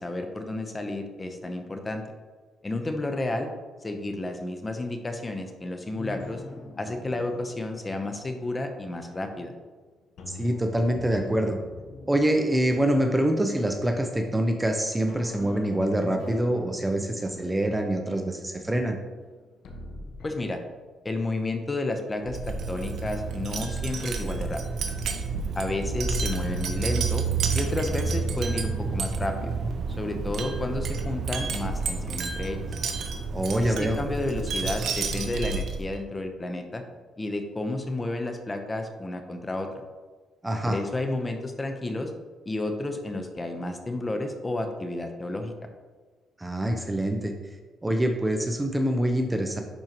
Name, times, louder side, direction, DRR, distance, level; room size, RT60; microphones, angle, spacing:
voice 1, 0.0-2.0 2.6-3.5 3.8-6.4 6.8-9.5 20.2-20.6 21.0-24.6 25.5-27.2 27.5-29.6 30.0-32.7 33.6-36.8 37.2-39.8 40.6-42.1 42.5-45.5, left 2 dB, 25° left, 6 dB, 0.9 m, -31 dB
sound 1, 6.0-9.7 10.2-14.7 15.1-20.3, left 2 dB, 70° left, 1.1 m, -44 dB
voice 2, 10.3-11.6 12.1-19.0 33.3-34.0 40.4-40.8 46.4-47.3 47.8-49.6, right 1 dB, 15° right, 5 dB, 0.7 m, -25 dB
Wind chime, 22.2-36.0, right 4 dB, 65° right, 0.8 m, -30 dB
11.0 x 4.4 x 3.0 m, 1.4 s
cardioid pair, 90°, 0 cm